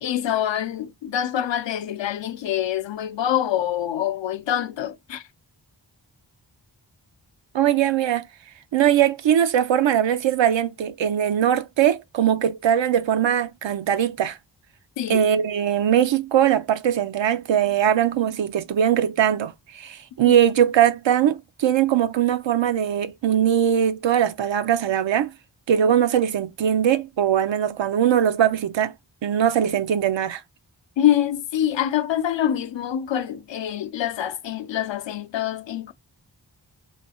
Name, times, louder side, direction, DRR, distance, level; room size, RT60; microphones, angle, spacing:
voice 1, 0.0-5.3 15.0-15.3 20.2-20.4 31.0-35.9, left 11 dB, 80° left, 0.5 m, -25 dB
voice 2, 7.5-8.3 8.7-14.4 15.1-25.3 25.7-28.9 29.2-30.4, right 10 dB, 85° right, 0.5 m, -21 dB
3.2 x 3.1 x 2.8 m
wide cardioid pair, 55°, 44 cm